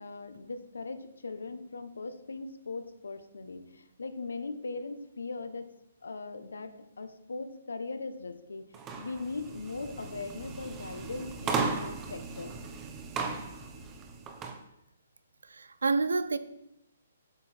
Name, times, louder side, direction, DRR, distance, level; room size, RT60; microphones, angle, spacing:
voice 1, 0.0-5.7 6.0-8.7 9.0-12.6, left 3 dB, 85° left, 1.3 m, -39 dB
sound 1, 8.7-14.6, right 4 dB, 20° right, 1.2 m, -36 dB
voice 2, 15.5-16.4, right 3 dB, 85° right, 0.8 m, -28 dB
8.5 x 8.2 x 4.6 m
hypercardioid pair, 145°, 0 cm